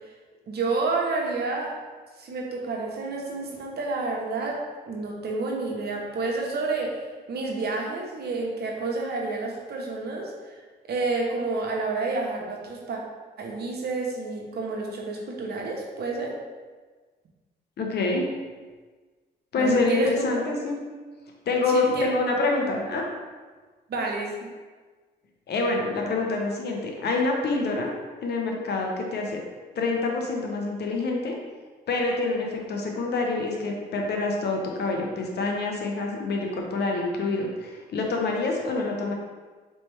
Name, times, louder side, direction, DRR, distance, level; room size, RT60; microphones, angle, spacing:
voice 1, 0.5-1.7 2.2-10.5 10.9-13.0 13.4-16.4 19.6-20.2 21.7-22.1 23.9-24.5, right 3 dB, 60° right, -1 dB, 0.9 m, -29 dB
voice 2, 17.8-18.3 19.5-20.8 21.5-23.0 25.5-27.9 28.2-29.4 29.8-31.4 31.9-39.1, left 3 dB, 65° left, 1 dB, 0.9 m, -26 dB
4.2 x 3.3 x 3.3 m, 1.4 s
cardioid pair, 70°, 18 cm